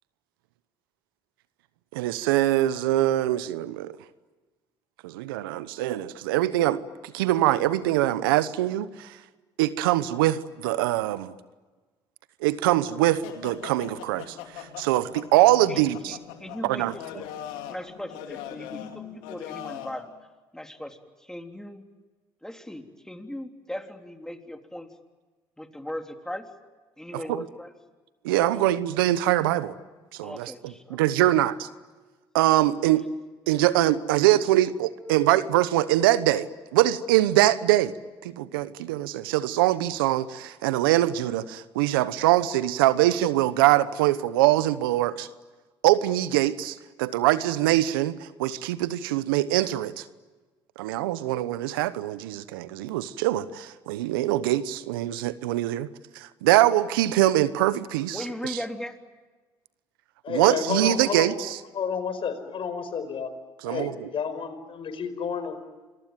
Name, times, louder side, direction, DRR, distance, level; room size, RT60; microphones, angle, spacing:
voice 1, 1.9-4.0 5.0-9.2 9.6-11.3 12.4-16.2 16.6-16.9 27.1-27.5 28.2-29.8 30.1-31.7 32.3-33.0 33.5-37.9 38.2-45.3 45.8-50.1 50.8-55.9 56.1-58.6 60.3-61.6 63.6-64.1, right 14 dB, 85° right, 16 dB, 1.0 m, -23 dB
sound 1, 13.2-20.0, left 10 dB, 80° left, 2.7 m, -41 dB
voice 2, 16.4-17.3 17.7-20.1 20.5-21.0 21.3-21.8 22.4-24.9 25.6-26.4 27.0-27.7 28.5-28.6 30.2-31.0 35.0-35.1 58.1-59.0, left 1 dB, 5° left, 5 dB, 3.4 m, -38 dB
voice 3, 60.2-61.3 61.7-63.3 63.6-65.6, left 6 dB, 50° left, 10 dB, 5.0 m, -30 dB
28.0 x 22.5 x 9.1 m, 1.3 s
hypercardioid pair, 60°, 11 cm